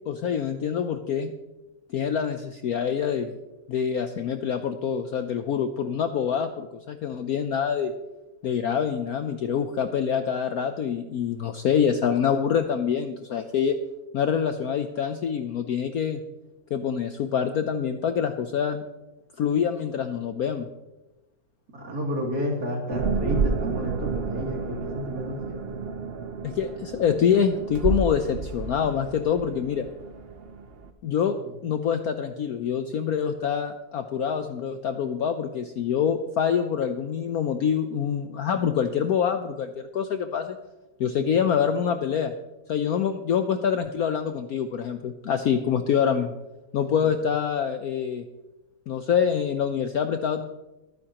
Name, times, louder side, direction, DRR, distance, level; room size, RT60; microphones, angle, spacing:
voice 1, 0.1-1.3 1.9-3.3 3.7-7.9 8.4-13.8 14.1-16.2 16.7-18.8 19.4-20.7 26.4-29.9 31.0-31.4 31.6-40.6 41.0-42.3 42.7-46.3 46.7-48.2 48.9-50.4, left 7 dB, 65° left, 8 dB, 0.9 m, -25 dB
voice 2, 21.7-25.6 31.2-31.5 41.1-41.4 46.8-47.1, equal, 50° right, -1 dB, 3.3 m, -32 dB
sound 1, 22.9-30.9, right 4 dB, 80° right, 0.5 m, -31 dB
23.5 x 9.7 x 2.9 m, 1.0 s
omnidirectional pair, 2.1 m